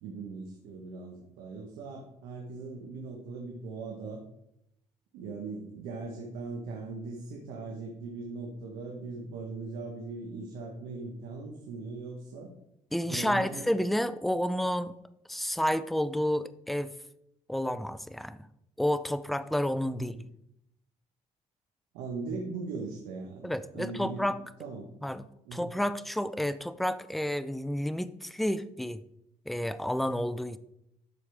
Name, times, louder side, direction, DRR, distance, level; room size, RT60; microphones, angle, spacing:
voice 1, 0.0-4.2 5.1-12.5 13.1-13.7 20.0-20.2 21.9-24.3 24.6-24.9 25.4-25.7, right 3 dB, 85° right, 0 dB, 1.3 m, -39 dB
voice 2, 12.9-14.9 15.3-16.9 17.5-18.5 18.8-20.2 23.4-24.4 25.0-25.2 25.5-29.0 29.5-30.6, equal, ahead, 14 dB, 0.5 m, -30 dB
12.0 x 4.7 x 3.5 m, 0.79 s
supercardioid pair, 60°, 15 cm